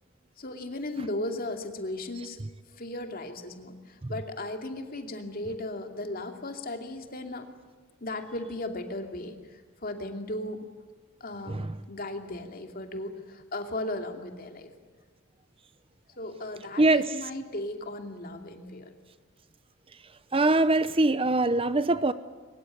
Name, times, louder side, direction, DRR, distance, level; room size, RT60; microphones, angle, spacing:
voice 1, 0.4-2.4 2.8-7.5 8.0-10.7 11.2-14.7 16.2-18.9, left 1 dB, 45° left, 2.6 m, -36 dB
voice 2, 16.8-17.1 20.3-22.1, right 2 dB, 25° right, 0.7 m, -23 dB
23.0 x 21.5 x 9.2 m
head